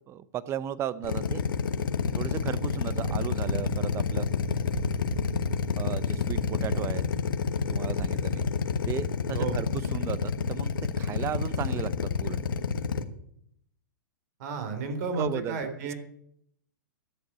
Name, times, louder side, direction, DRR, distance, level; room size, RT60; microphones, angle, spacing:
voice 1, 0.1-1.4 2.2-4.3 5.8-7.0 7.7-8.5 8.8-12.4 15.1-15.6, right 10 dB, 25° right, 17 dB, 0.7 m, -35 dB
Drill, 1.0-13.0, left 6 dB, 85° left, 1.3 m, -28 dB
sound 1, 3.0-8.7, right 6 dB, 80° right, 1.0 m, -40 dB
voice 2, 14.4-15.9, right 4 dB, 55° right, 6 dB, 3.3 m, -32 dB
11.0 x 7.3 x 8.7 m, 0.70 s
hypercardioid pair, 135°, 11 cm